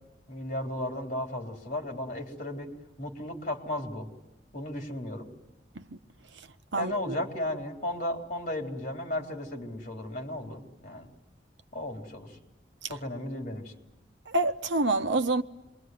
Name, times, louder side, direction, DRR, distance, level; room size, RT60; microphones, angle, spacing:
voice 1, 0.3-2.7 3.0-4.1 4.5-5.3 6.7-11.1 11.7-12.4 12.8-13.7, left 1 dB, 45° left, 4.1 m, -35 dB
voice 2, 6.7-7.1 14.3-15.4, right 2 dB, 90° right, 1.1 m, -26 dB
27.5 x 22.5 x 9.6 m
head